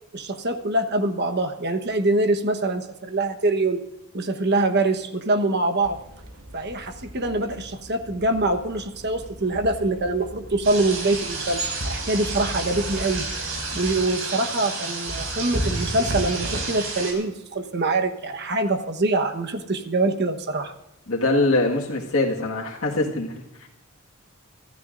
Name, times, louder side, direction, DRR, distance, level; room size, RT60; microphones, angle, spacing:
voice 1, 0.1-3.8 4.1-6.0 6.5-13.2 13.7-20.7, right 2 dB, 50° right, 7 dB, 1.2 m, -24 dB
sound 1, 5.8-14.1, equal, 85° right, 2.9 m, -42 dB
sound 2, 10.6-17.1, right 2 dB, 65° right, 5.9 m, -29 dB
voice 2, 21.1-23.7, left 2 dB, 70° left, -1 dB, 1.8 m, -23 dB
25.0 x 14.0 x 2.6 m, 0.89 s
head